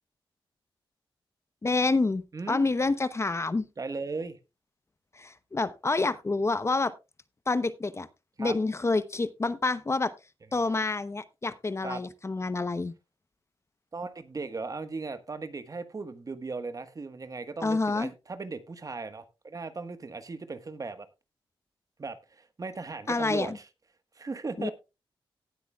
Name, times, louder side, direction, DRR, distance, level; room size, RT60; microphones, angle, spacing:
voice 1, 1.6-3.7 5.1-6.9 7.5-8.1 8.4-10.1 10.5-12.9 17.6-18.1 23.1-23.6 24.6-24.7, left 3 dB, 30° left, 13 dB, 0.8 m, -28 dB
voice 2, 3.8-4.4 8.4-8.6 10.6-10.7 11.8-12.0 13.9-21.1 22.0-23.7 24.1-24.7, right 4 dB, 40° right, 11 dB, 1.4 m, -37 dB
18.5 x 8.1 x 2.3 m, 0.27 s
cardioid pair, 75°, 9 cm